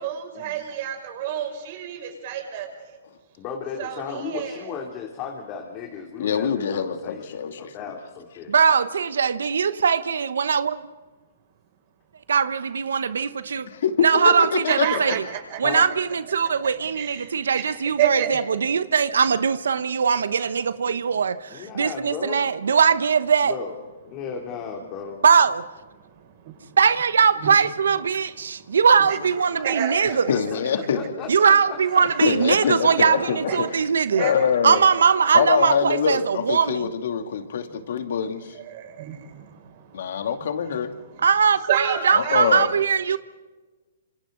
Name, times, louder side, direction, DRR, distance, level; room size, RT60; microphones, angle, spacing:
voice 1, 0.0-2.7 3.8-4.7 14.7-15.6 16.9-18.4 27.4-27.5 29.1-29.2 29.6-30.1 32.0-32.1 33.5-33.6 34.1-34.4 38.5-41.2 41.7-42.6, right 10 dB, 50° right, 3 dB, 6.1 m, -30 dB
voice 2, 3.4-8.5 15.6-15.9 21.5-22.5 23.4-23.8 24.0-25.2 29.0-29.1 29.4-29.6 30.3-31.3 31.7-32.0 32.6-33.6, left 6 dB, 30° left, 1 dB, 2.9 m, -35 dB
voice 3, 6.2-7.7 13.8-15.0 30.3-31.0 32.2-33.7 34.2-34.8 35.3-38.5 39.9-40.9 42.1-42.7, left 7 dB, 65° left, 6 dB, 2.6 m, -24 dB
voice 4, 8.5-10.8 12.3-13.6 14.0-15.2 15.6-23.5 25.2-25.6 26.8-30.2 31.3-34.2 34.6-36.9 41.2-43.2, right 6 dB, 80° right, 13 dB, 1.0 m, -20 dB
27.5 x 27.0 x 3.9 m, 1.3 s
hypercardioid pair, 140°, 0 cm